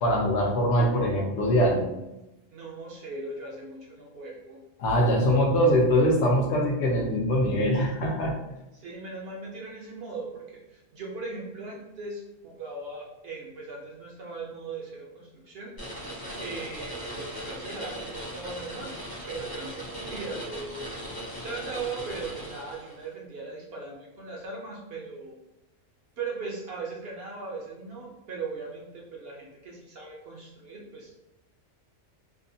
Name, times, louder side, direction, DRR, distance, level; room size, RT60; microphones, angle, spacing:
voice 1, 0.0-1.9 4.8-8.4, equal, 70° left, 0 dB, 0.9 m, -23 dB
voice 2, 2.5-4.6 5.4-5.6 8.7-15.7 16.4-18.9 19.3-20.8 21.4-25.4 26.2-31.2, right 3 dB, 60° right, -2 dB, 0.7 m, -39 dB
sound 1, 15.8-23.0, equal, 20° left, 0.6 m, -38 dB
2.6 x 2.1 x 2.6 m, 0.92 s
omnidirectional pair, 1.3 m